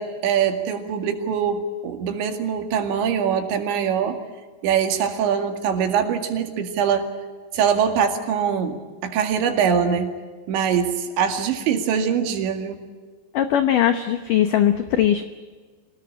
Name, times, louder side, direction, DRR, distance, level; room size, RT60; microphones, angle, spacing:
voice 1, 0.0-4.2 4.6-7.1 7.5-10.1 10.5-12.8, right 7 dB, 85° right, 6 dB, 4.5 m, -23 dB
voice 2, 13.3-15.2, left 10 dB, 70° left, 8 dB, 2.1 m, -19 dB
26.0 x 19.0 x 8.8 m, 1.5 s
omnidirectional pair, 5.1 m